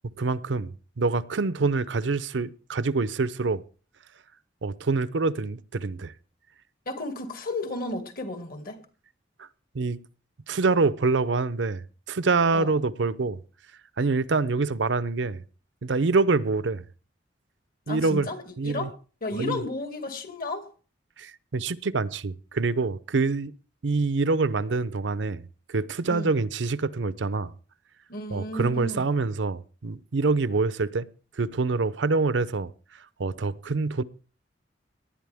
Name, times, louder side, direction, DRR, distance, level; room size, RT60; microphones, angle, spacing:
voice 1, 0.2-0.7 1.0-3.6 4.6-6.1 9.7-10.0 10.5-13.4 14.0-15.4 15.8-16.8 17.9-18.3 18.6-18.9 19.4-19.6 21.2-23.5 23.8-27.5 28.3-31.1 31.4-32.7 33.2-34.0, right 3 dB, 75° right, 0.7 m, -26 dB
voice 2, 6.9-8.8 12.5-12.9 17.9-18.9 19.2-20.7 26.1-26.4 28.1-29.2, left 1 dB, 55° left, 2.3 m, -33 dB
18.5 x 11.0 x 3.5 m
head